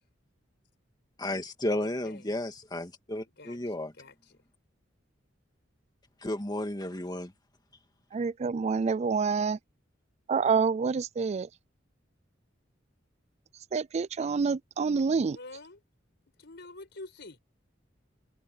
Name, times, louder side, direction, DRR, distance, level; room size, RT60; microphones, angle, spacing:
voice 1, 1.2-3.9 6.2-7.3, left 1 dB, 20° left, 2.2 m, -33 dB
voice 2, 1.8-2.3 3.4-4.4 15.3-15.8 16.4-17.4, left 2 dB, 65° left, 5.5 m, -47 dB
voice 3, 8.1-9.6 10.3-11.5 13.7-15.4, right 5 dB, 35° right, 0.3 m, -27 dB
head